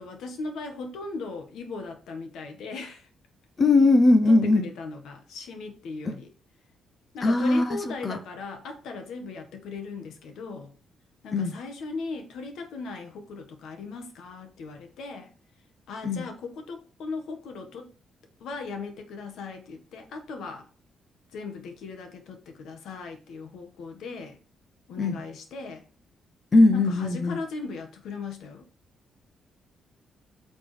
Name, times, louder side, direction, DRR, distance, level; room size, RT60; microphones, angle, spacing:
voice 1, 0.0-3.1 4.3-6.3 7.1-10.7 11.2-15.3 15.9-17.9 18.4-20.7 21.3-24.4 24.9-25.8 26.7-28.7, left 4 dB, 80° left, 1.5 m, -38 dB
voice 2, 3.6-4.6 7.2-7.6 8.0-8.2 11.3-11.5 16.0-16.2 25.0-25.2 26.5-27.4, left 2 dB, 25° left, 0.7 m, -19 dB
9.0 x 5.2 x 3.3 m
cardioid pair, 155°, 0 cm